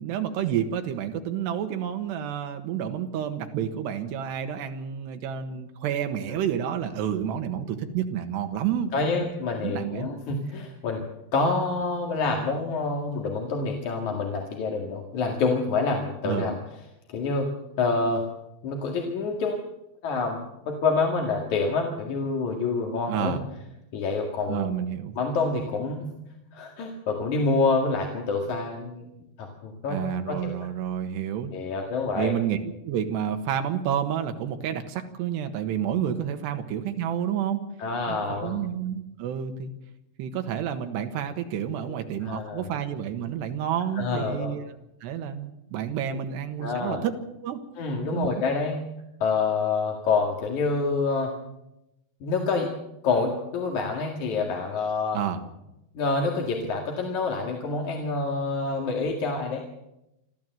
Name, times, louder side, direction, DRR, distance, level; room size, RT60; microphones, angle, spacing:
voice 1, 0.0-8.9 9.6-10.1 16.2-16.5 23.1-23.4 24.5-25.2 29.9-31.5 32.2-32.6 32.9-37.6 38.1-39.7 40.2-44.6 45.0-47.1 47.4-47.6 48.1-48.3 55.1-55.4, right 9 dB, 80° right, 7 dB, 3.5 m, -29 dB
voice 2, 8.9-11.0 11.3-16.6 17.1-17.5 17.8-18.2 18.6-19.6 20.0-20.4 20.7-23.4 23.9-24.7 25.2-26.1 26.5-29.1 29.4-30.0 30.3-30.5 31.5-32.3 37.8-38.6 41.8-42.0 42.2-42.7 44.0-44.6 46.6-47.0 47.8-48.8 49.2-51.3 52.2-52.7 53.0-55.2 55.9-59.6, left 4 dB, 50° left, 1 dB, 3.0 m, -27 dB
25.5 x 14.0 x 7.8 m, 0.90 s
omnidirectional pair, 5.0 m